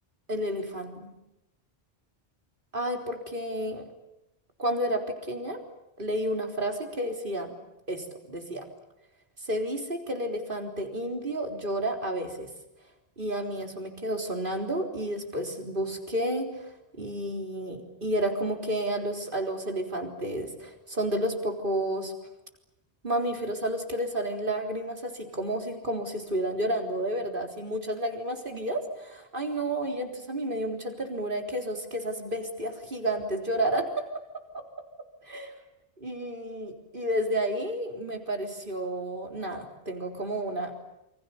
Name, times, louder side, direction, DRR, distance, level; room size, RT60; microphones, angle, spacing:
voice 1, 0.3-0.9 2.7-3.8 4.6-5.6 6.0-7.5 7.9-8.7 9.4-12.5 13.2-16.7 17.0-22.1 23.0-34.1 34.5-34.6 35.3-35.5 36.0-40.7, right 1 dB, 50° right, 4 dB, 4.1 m, -31 dB
28.5 x 25.0 x 7.2 m, 0.91 s
omnidirectional pair, 1.1 m